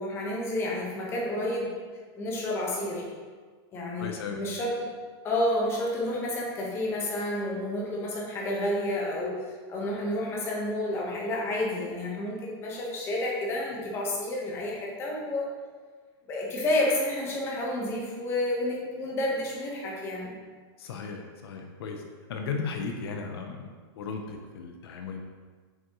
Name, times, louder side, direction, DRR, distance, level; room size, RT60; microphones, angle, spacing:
voice 1, 0.0-1.8 2.2-3.1 3.7-4.8 5.2-15.5 16.3-20.4, left 1 dB, 15° left, -3 dB, 1.1 m, -30 dB
voice 2, 4.0-4.4 20.8-22.0 22.3-23.7 24.0-25.2, left 5 dB, 65° left, 3 dB, 0.7 m, -35 dB
7.3 x 5.3 x 3.0 m, 1.5 s
supercardioid pair, 170°, 14 cm